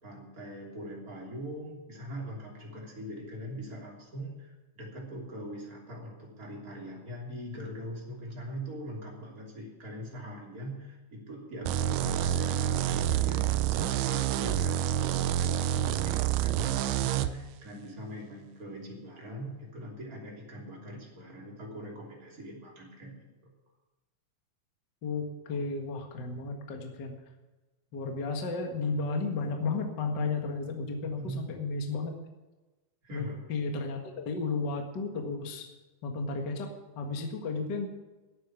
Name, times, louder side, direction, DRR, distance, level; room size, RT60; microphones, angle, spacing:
voice 1, 0.0-23.5 31.0-31.5 33.0-33.4, right 1 dB, 25° right, -2 dB, 3.0 m, -42 dB
sound 1, 11.7-17.3, right 11 dB, 85° right, 1.9 m, -28 dB
voice 2, 25.0-27.1 27.9-32.1 33.1-35.7 36.0-36.7 36.9-37.9, left 3 dB, 45° left, 3 dB, 1.4 m, -33 dB
11.5 x 8.9 x 9.9 m, 1.1 s
omnidirectional pair, 4.5 m